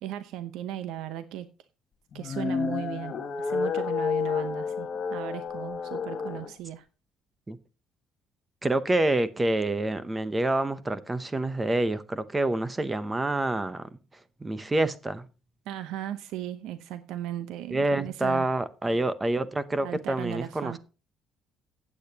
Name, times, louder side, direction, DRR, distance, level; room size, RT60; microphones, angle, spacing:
voice 1, 0.0-1.5 2.1-6.8 15.7-18.5 19.8-20.8, right 12 dB, 75° right, 0.8 m, -37 dB
sound 1, 2.1-6.5, left 6 dB, 30° left, 1.3 m, -30 dB
voice 2, 8.6-13.9 14.4-15.3 17.7-20.8, right 2 dB, 10° right, 0.7 m, -27 dB
15.0 x 8.6 x 2.9 m
cardioid pair, 180°, 0 cm